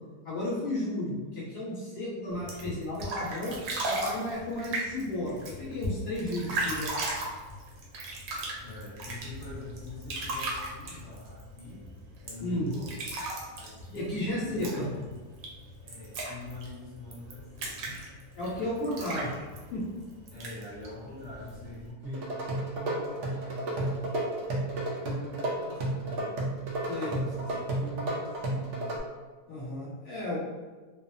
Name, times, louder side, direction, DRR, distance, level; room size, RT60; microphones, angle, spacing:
voice 1, 0.2-3.6 3.8-7.0 12.4-12.7 13.9-14.8 18.3-19.3 19.7-19.8 26.9-27.2 29.5-30.4, left 1 dB, 40° left, -8 dB, 1.1 m, -33 dB
sound 1, 2.3-21.9, right 1 dB, 70° right, 0.9 m, -37 dB
voice 2, 8.6-11.9 12.2-13.0 13.5-15.2 15.8-18.1 18.4-18.7 20.3-22.3 22.7-26.4 26.8-29.1, left 2 dB, 60° left, -8 dB, 0.8 m, -45 dB
sound 2, 22.0-29.0, right 1 dB, 90° right, 0.6 m, -32 dB
2.8 x 2.0 x 2.4 m, 1.3 s
omnidirectional pair, 1.8 m